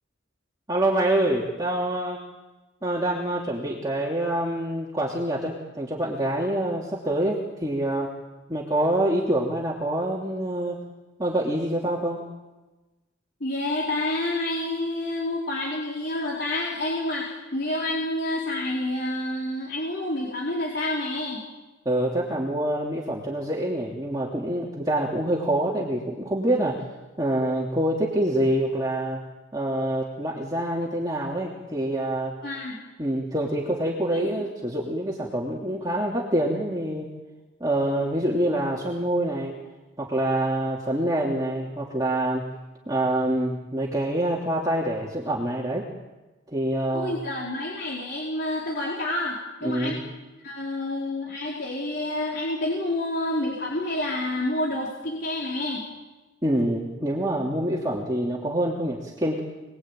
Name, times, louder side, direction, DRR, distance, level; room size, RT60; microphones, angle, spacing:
voice 1, 0.7-2.2 2.8-8.1 8.5-10.8 11.2-12.2 21.8-26.8 27.2-29.2 29.5-32.4 33.0-37.1 37.6-39.6 40.0-42.4 42.9-45.9 46.5-47.2 49.6-50.0 56.4-59.4, right 1 dB, 20° right, -3 dB, 2.9 m, -26 dB
voice 2, 13.4-21.4 32.4-32.8 34.1-34.3 46.9-50.0 50.4-55.8, left 1 dB, 50° left, -4 dB, 4.4 m, -28 dB
27.5 x 21.0 x 9.1 m, 1.1 s
head